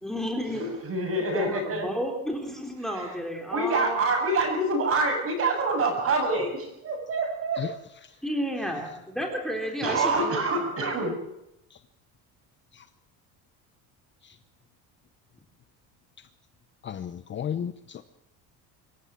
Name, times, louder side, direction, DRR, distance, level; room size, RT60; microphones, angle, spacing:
voice 1, 0.0-0.6 1.3-4.0 8.2-11.1, equal, ahead, 2 dB, 3.5 m, -32 dB
voice 2, 0.6-1.9 2.9-3.1 3.5-7.7 9.8-11.1, right 2 dB, 35° right, 4 dB, 7.8 m, -26 dB
voice 3, 16.8-18.0, left 9 dB, 30° left, 11 dB, 0.9 m, -34 dB
26.0 x 15.5 x 7.6 m, 0.82 s
cardioid pair, 155°, 38 cm